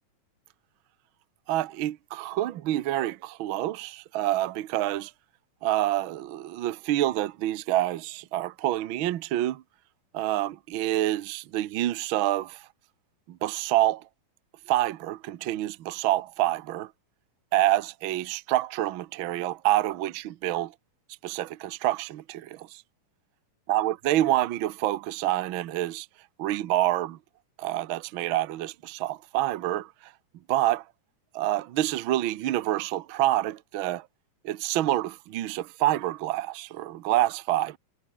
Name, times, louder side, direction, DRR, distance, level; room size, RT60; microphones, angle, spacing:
voice 1, 1.5-5.1 5.6-9.6 10.1-12.7 13.3-14.0 14.7-16.9 17.5-20.7 21.2-22.7 23.7-26.1 26.4-27.2 27.6-30.1 30.5-30.8 31.3-34.1 34.4-37.8, right 14 dB, 80° right, 1.1 m, -27 dB
omnidirectional pair, 3.6 m